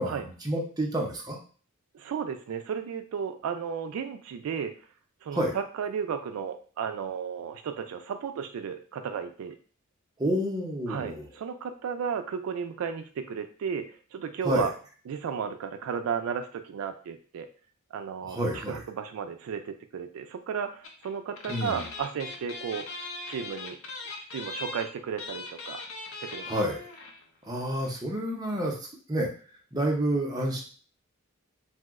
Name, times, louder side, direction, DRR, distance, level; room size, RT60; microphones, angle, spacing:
voice 1, 0.0-1.4 5.3-5.5 10.2-11.3 14.4-14.7 18.2-18.8 21.5-21.9 26.5-26.8 27.4-28.7 29.1-29.3 29.7-30.6, equal, 20° right, -1 dB, 0.6 m, -29 dB
voice 2, 1.9-4.7 5.2-9.6 10.9-14.7 15.1-17.5 17.9-23.8 24.2-25.8 26.2-26.5, right 7 dB, 80° right, 7 dB, 0.3 m, -34 dB
sound 1, 20.8-21.1 21.3-27.2 27.5-27.6 27.8-28.0, left 3 dB, 70° left, 0.6 m, -40 dB
2.8 x 2.1 x 3.5 m, 0.40 s
head